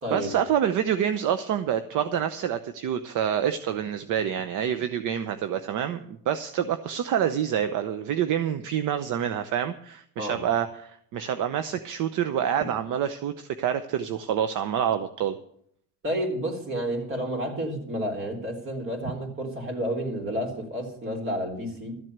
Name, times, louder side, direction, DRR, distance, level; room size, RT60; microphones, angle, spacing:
voice 1, 0.1-15.4, right 9 dB, 65° right, 10 dB, 0.8 m, -27 dB
voice 2, 16.0-22.0, equal, 40° right, 2 dB, 3.7 m, -30 dB
13.5 x 7.7 x 8.0 m, 0.66 s
cardioid pair, 140°, 34 cm